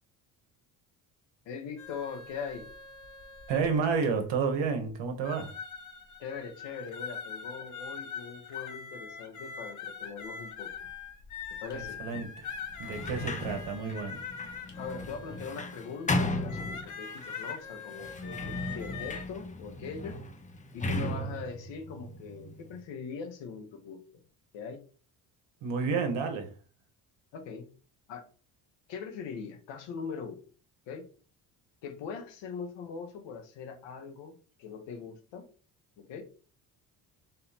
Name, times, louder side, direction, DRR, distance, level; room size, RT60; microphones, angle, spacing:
voice 1, 1.4-2.7 6.2-10.7 11.6-12.0 14.8-20.2 20.7-24.0 24.5-24.9 27.3-27.7 28.1-28.2 28.9-30.4 30.9-31.1 31.8-35.5 36.0-36.2, left 5 dB, 70° left, 1.1 m, -41 dB
sound 1, 1.8-4.3 4.8-4.9 5.2-19.2, left 6 dB, 40° left, 1.1 m, -43 dB
voice 2, 3.5-5.5 11.7-12.5 12.8-14.2 25.6-26.5, right 5 dB, 70° right, 1.3 m, -30 dB
Sliding door, 12.8-17.3 17.9-22.8, left 1 dB, 15° left, 0.7 m, -36 dB
4.1 x 2.8 x 4.1 m
supercardioid pair, 65°, 46 cm